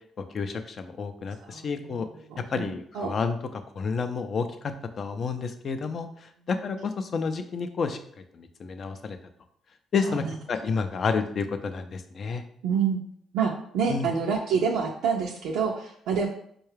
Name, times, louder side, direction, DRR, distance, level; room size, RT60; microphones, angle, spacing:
voice 1, 0.3-2.1 2.4-3.4 3.8-8.0 8.3-9.2 9.9-12.4 13.9-14.1, left 5 dB, 50° left, 8 dB, 0.4 m, -30 dB
voice 2, 1.4-3.1 10.0-10.4 12.6-13.0 13.3-16.3, right 6 dB, 90° right, -1 dB, 0.4 m, -28 dB
4.5 x 2.3 x 3.2 m, 0.66 s
cardioid pair, 90°, 0 cm